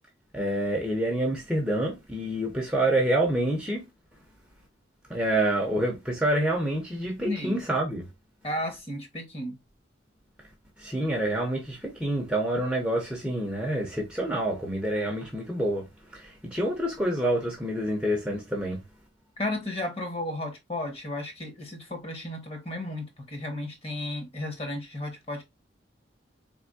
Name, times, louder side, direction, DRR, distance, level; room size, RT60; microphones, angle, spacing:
voice 1, 0.3-3.9 5.1-8.1 10.8-15.8 16.1-18.8, right 1 dB, 5° right, 0.8 m, -27 dB
voice 2, 7.3-7.6 8.4-9.5 19.4-25.4, left 1 dB, 30° left, 1.4 m, -33 dB
4.1 x 3.5 x 2.7 m
head